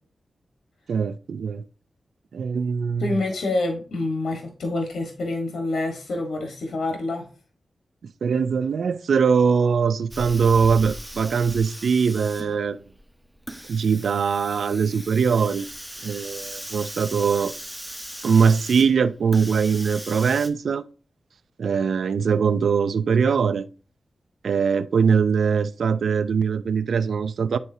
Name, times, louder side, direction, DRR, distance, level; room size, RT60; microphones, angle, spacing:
voice 1, 0.9-1.6 2.3-3.0 8.2-12.8 13.7-15.7 16.0-17.5 18.2-20.8 21.6-23.7 24.4-27.6, right 6 dB, 85° right, 0.4 m, -21 dB
voice 2, 3.0-7.3, left 2 dB, 90° left, 1.4 m, -27 dB
Hiss, 10.1-20.5, right 1 dB, 5° right, 1.0 m, -38 dB
9.4 x 4.2 x 2.7 m
wide cardioid pair, 85°, 0 cm